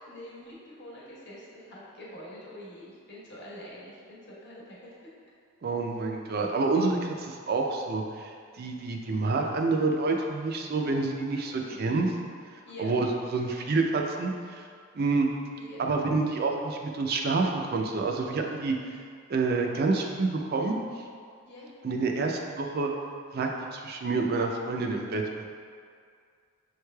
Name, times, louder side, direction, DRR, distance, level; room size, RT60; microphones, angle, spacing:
voice 1, 0.1-4.9 11.5-11.9 12.7-12.9 15.5-15.8 21.4-21.7, equal, 55° left, -7 dB, 1.2 m, -45 dB
voice 2, 5.6-11.5 11.8-12.1 12.8-14.6 14.9-15.3 15.8-18.7 19.3-20.8 21.8-22.9 23.3-25.4, right 3 dB, 50° right, 1 dB, 0.4 m, -28 dB
7.2 x 3.2 x 2.2 m, 2.2 s
head